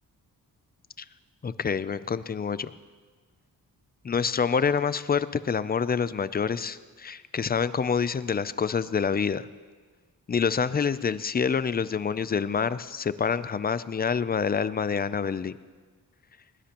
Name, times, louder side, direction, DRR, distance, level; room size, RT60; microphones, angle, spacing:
voice 1, 1.4-2.7 4.0-9.5 10.3-15.5, left 6 dB, 25° left, 15 dB, 0.4 m, -27 dB
20.5 x 18.5 x 3.0 m, 1.5 s
wide cardioid pair, 115°, 37 cm